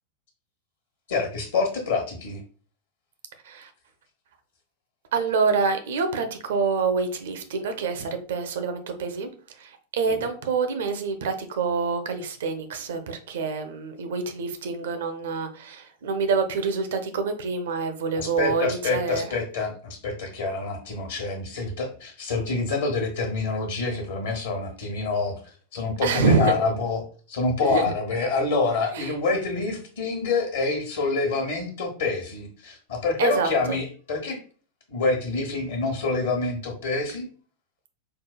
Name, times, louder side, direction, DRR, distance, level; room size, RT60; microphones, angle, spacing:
voice 1, 1.1-2.4 10.1-10.2 18.2-25.4 25.7-27.0 27.3-34.4 34.9-37.3, left 3 dB, 60° left, 0.9 m, -27 dB
voice 2, 5.1-9.3 9.6-9.7 10.0-19.3 26.0-26.5 27.7-27.8 28.9-29.1 33.2-33.8, right 5 dB, 60° right, 0.5 m, -26 dB
4.6 x 2.2 x 2.3 m
figure-of-eight pair, 90°, 0 cm